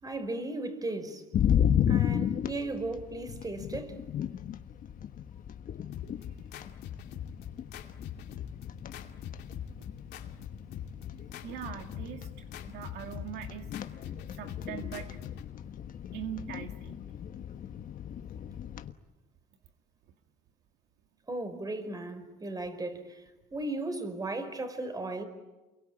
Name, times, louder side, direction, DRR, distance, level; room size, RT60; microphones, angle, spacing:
voice 1, 0.0-1.2 1.9-4.0 21.3-23.2 23.5-25.2, right 2 dB, 20° right, 4.9 m, -36 dB
sound 1, 1.3-18.9, left 9 dB, 55° left, 1.3 m, -34 dB
sound 2, 5.9-15.5, left 9 dB, 80° left, 2.6 m, -44 dB
voice 2, 11.4-13.7 14.4-15.2 16.1-17.0, right 9 dB, 85° right, 2.2 m, -41 dB
29.0 x 23.0 x 8.9 m
cardioid pair, 110°, 17 cm